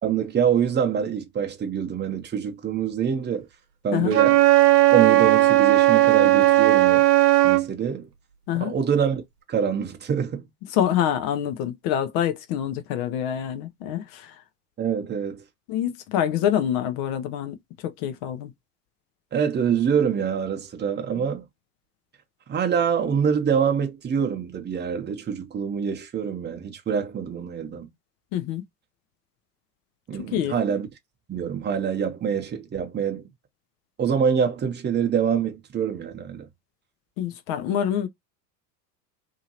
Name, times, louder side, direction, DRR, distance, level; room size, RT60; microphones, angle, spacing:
voice 1, 0.0-3.5 3.8-4.4 4.9-7.0 7.4-8.1 8.5-9.2 9.5-10.5 14.8-15.4 19.3-21.4 22.5-27.9 30.1-30.9 31.3-33.3 34.0-36.5, right 7 dB, 20° right, 0.9 m, -25 dB
Wind instrument woodwind instrument, 4.1-7.7, right 16 dB, 70° right, 0.9 m, -16 dB
voice 2, 10.7-14.3 15.7-17.6 17.8-18.5 28.3-28.6 30.3-30.6 37.2-38.1, left 10 dB, 50° left, 0.7 m, -26 dB
2.8 x 2.8 x 2.7 m
hypercardioid pair, 80°, 48 cm